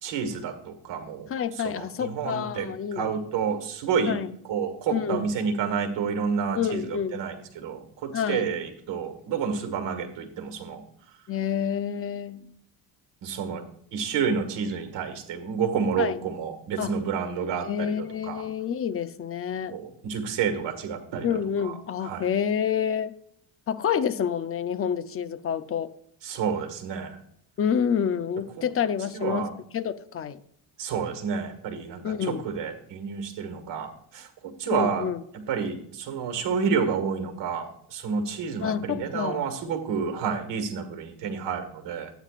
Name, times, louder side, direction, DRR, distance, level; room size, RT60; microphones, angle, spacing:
voice 1, 0.0-4.2 4.5-10.8 13.2-13.7 13.9-18.5 19.6-21.3 21.6-21.7 22.0-22.3 26.2-27.2 28.6-28.7 29.1-29.5 30.8-35.1 35.5-42.1, right 6 dB, 60° right, 1.9 m, -30 dB
voice 2, 1.3-3.1 4.1-4.3 4.9-5.3 6.6-7.2 8.1-8.5 11.3-12.5 16.0-16.2 16.8-17.0 17.6-19.8 21.2-23.1 23.7-25.9 27.6-30.4 32.0-32.5 34.7-35.2 38.6-39.5, left 8 dB, 30° left, 0.6 m, -28 dB
12.5 x 9.1 x 2.5 m
cardioid pair, 120°, 48 cm